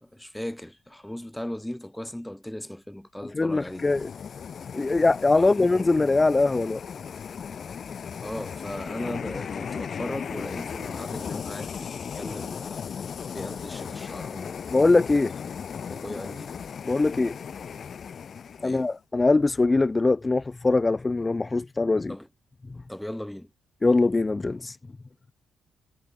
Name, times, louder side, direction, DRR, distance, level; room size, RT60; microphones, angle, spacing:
voice 1, 0.0-3.8 5.3-5.7 8.2-12.8 13.3-14.6 15.9-16.6 18.6-18.9 22.1-22.3 22.9-23.5, left 1 dB, 5° left, 3.6 m, -37 dB
voice 2, 3.3-4.1 4.7-6.8 14.7-15.3 16.9-17.4 18.6-22.2 23.8-24.8, left 3 dB, 20° left, 0.6 m, -22 dB
sound 1, 3.5-18.9, left 7 dB, 50° left, 1.0 m, -36 dB
cardioid pair, 90°, 0 cm